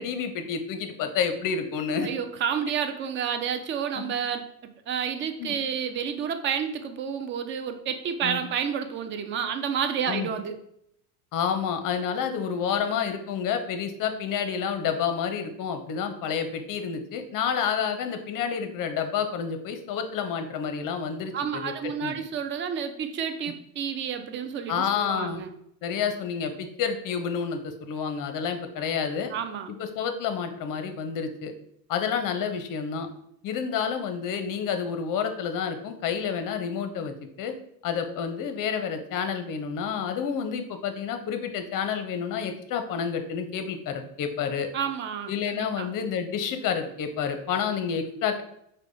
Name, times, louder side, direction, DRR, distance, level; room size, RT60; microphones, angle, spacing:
voice 1, 0.0-2.1 4.0-4.1 5.4-5.5 8.2-8.4 10.1-10.3 11.3-21.7 22.0-22.2 24.7-25.4 25.8-29.3 29.7-31.5 31.9-33.1 33.4-37.5 37.8-44.7 45.3-48.4, left 7 dB, 40° left, 7 dB, 0.7 m, -29 dB
voice 2, 2.0-4.4 4.9-10.6 21.3-25.5 29.3-29.7 44.7-45.9, right 7 dB, 25° right, 8 dB, 0.3 m, -30 dB
4.8 x 2.3 x 3.7 m, 0.74 s
hypercardioid pair, 90°, 49 cm